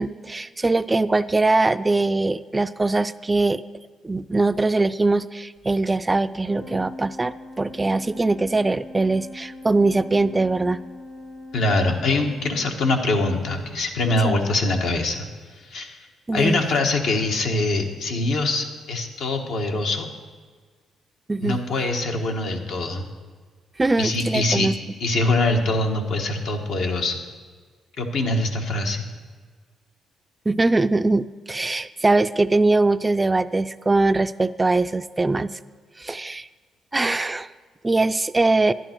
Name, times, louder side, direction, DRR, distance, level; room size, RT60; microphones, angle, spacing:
voice 1, 0.0-3.6 4.0-10.8 14.2-14.4 16.3-16.6 21.3-21.6 23.8-24.7 30.5-35.6 36.0-36.5 36.9-37.5 37.8-38.7, right 2 dB, 20° right, 13 dB, 0.3 m, -22 dB
Organ, 6.4-13.0, left 2 dB, 40° left, 1.3 m, -41 dB
voice 2, 11.5-15.3 15.5-16.0 16.3-20.1 21.4-23.0 24.0-24.7 25.0-27.2 28.0-29.1, left 2 dB, 75° left, 2 dB, 1.4 m, -23 dB
11.0 x 11.0 x 4.5 m, 1.5 s
cardioid pair, 90°, 0 cm